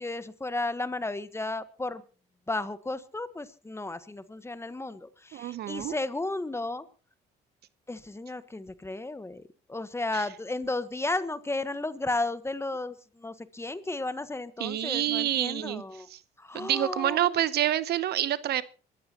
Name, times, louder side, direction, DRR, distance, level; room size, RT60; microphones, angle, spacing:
voice 1, 0.0-2.0 2.5-6.8 7.9-9.4 9.7-16.1 16.4-17.4, left 2 dB, 15° left, 1.3 m, -33 dB
voice 2, 5.3-5.9 10.1-10.2 14.6-15.8 16.1-16.2 16.5-18.6, right 12 dB, 65° right, 0.8 m, -27 dB
25.5 x 14.0 x 3.0 m
supercardioid pair, 75°, 18 cm